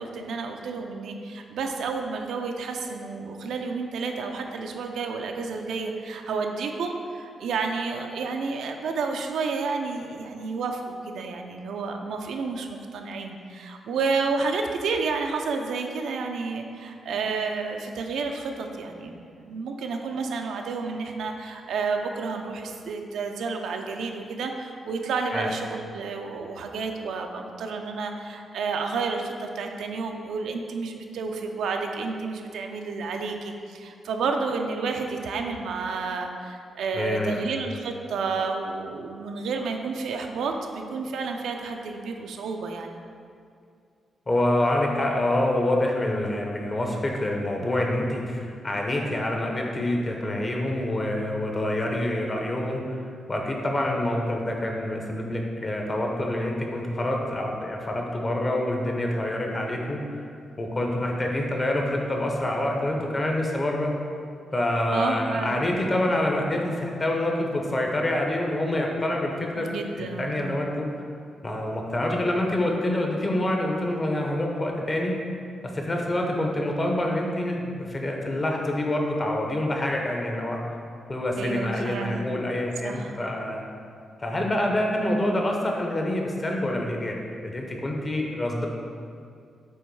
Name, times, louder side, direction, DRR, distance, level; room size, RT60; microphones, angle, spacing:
voice 1, 0.0-42.9 64.9-65.6 69.6-70.6 81.4-82.2 82.8-83.2, right 4 dB, 90° right, 3 dB, 0.5 m, -30 dB
voice 2, 37.0-37.4 44.3-53.0 53.3-60.2 60.6-63.9 64.5-69.7 70.0-70.9 71.4-75.1 75.7-80.6 81.1-83.6 84.2-87.2 87.4-88.7, left 1 dB, 25° left, 0 dB, 0.8 m, -26 dB
7.9 x 3.1 x 4.7 m, 2.3 s
wide cardioid pair, 150°, 0 cm